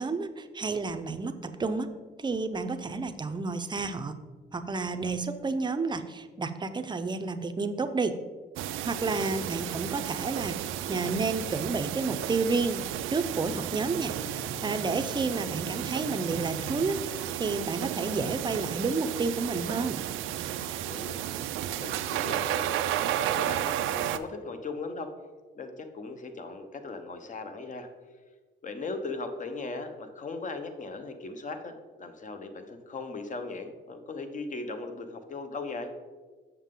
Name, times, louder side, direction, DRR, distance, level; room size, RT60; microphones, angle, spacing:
voice 1, 0.0-1.9 2.2-4.2 4.5-8.2 8.8-10.6 10.9-20.0, right 3 dB, 20° right, 8 dB, 0.6 m, -31 dB
sound 1, 8.6-24.2, right 11 dB, 90° right, 0.4 m, -33 dB
voice 2, 9.0-9.7 20.6-21.2 21.7-25.1 25.5-27.9 28.6-35.9, left 3 dB, 40° left, 7 dB, 0.9 m, -38 dB
sound 2, 11.8-16.9, left 3 dB, 20° left, 1.3 m, -48 dB
7.2 x 6.7 x 3.7 m, 1.4 s
cardioid pair, 90°, 20 cm